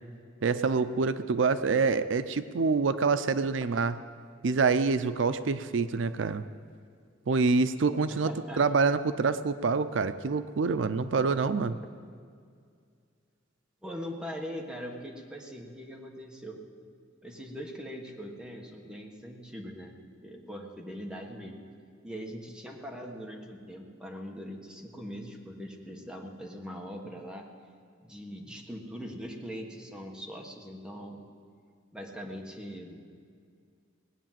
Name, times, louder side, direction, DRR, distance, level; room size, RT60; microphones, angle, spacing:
voice 1, 0.4-4.0 4.4-6.4 7.3-8.3 8.6-11.8, right 4 dB, 75° right, 13 dB, 0.5 m, -26 dB
voice 2, 8.1-8.7 13.8-16.6 17.2-20.0 20.2-21.6 22.0-27.5 28.0-31.2 31.9-33.0, equal, 5° right, 1 dB, 1.4 m, -41 dB
18.5 x 9.1 x 7.5 m, 2.2 s
head